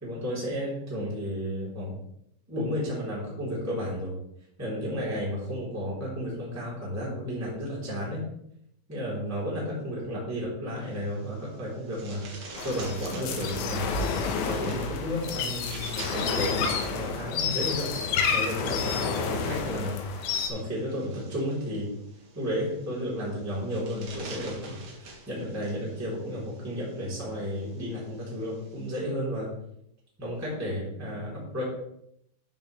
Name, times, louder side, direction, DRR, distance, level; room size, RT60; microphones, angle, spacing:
voice 1, 0.0-2.0 2.5-4.1 4.6-8.2 8.9-12.2 12.6-14.1 14.4-16.6 16.9-20.0 20.5-21.9 22.3-29.5 30.2-31.6, equal, 5° right, -6 dB, 2.1 m, -32 dB
sound 1, 10.8-29.0, right 2 dB, 65° right, 1.6 m, -47 dB
sound 2, 12.6-20.5, left 5 dB, 80° left, 2.8 m, -30 dB
12.5 x 5.3 x 3.2 m, 0.75 s
omnidirectional pair, 5.7 m